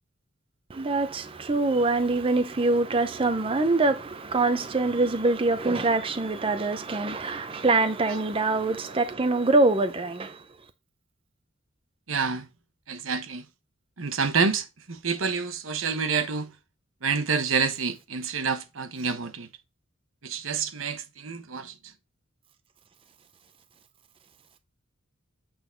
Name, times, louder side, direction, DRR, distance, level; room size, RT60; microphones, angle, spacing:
voice 1, 0.7-10.4, right 3 dB, 25° right, 0.6 m, -24 dB
voice 2, 12.1-12.5 12.9-13.4 14.0-16.5 17.0-19.5 20.2-21.7, right 5 dB, 75° right, 1.1 m, -28 dB
8.3 x 3.9 x 4.4 m
head